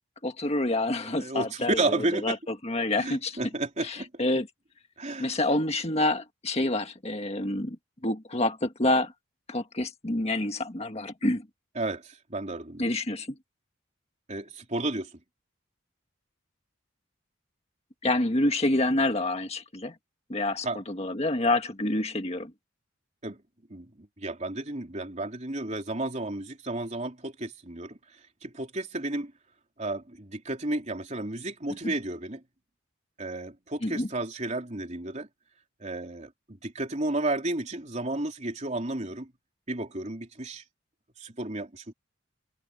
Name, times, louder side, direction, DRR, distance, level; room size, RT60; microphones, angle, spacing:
voice 1, 0.2-2.3 2.6-3.4 3.8-4.5 5.2-7.8 8.0-9.1 9.5-11.4 12.8-13.3 18.0-19.9 20.3-22.5 31.8-31.9 33.8-34.1, left 2 dB, 30° left, 1.7 m, -27 dB
voice 2, 1.0-2.4 3.0-4.1 5.0-5.4 11.7-12.9 14.3-15.2 20.6-20.8 23.2-23.4 23.7-29.3 29.8-32.4 33.2-35.3 35.8-39.3 39.7-40.6 41.2-41.9, right 2 dB, 35° right, 3.5 m, -32 dB
open air
head